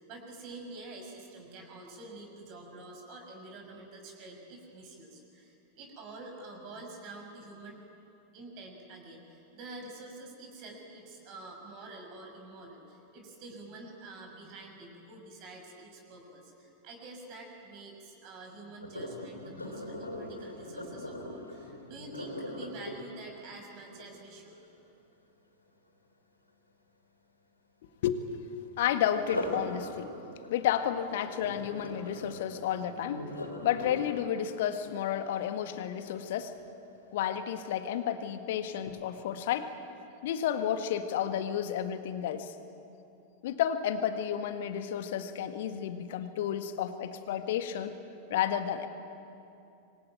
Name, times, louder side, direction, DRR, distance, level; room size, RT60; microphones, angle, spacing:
voice 1, 0.0-7.8 8.3-24.6, right 2 dB, 40° right, 2 dB, 5.8 m, -47 dB
Sink (filling or washing), 18.8-24.8 29.1-36.2 36.7-37.0 37.5-37.6, left 1 dB, 85° left, 3.8 m, -41 dB
voice 2, 28.8-30.1 30.5-33.2 33.6-36.5 37.1-39.7 40.2-42.5 43.4-48.0 48.3-48.9, left 10 dB, 55° left, 9 dB, 1.8 m, -31 dB
26.0 x 23.5 x 9.1 m, 2.8 s
figure-of-eight pair, 90°, 0 cm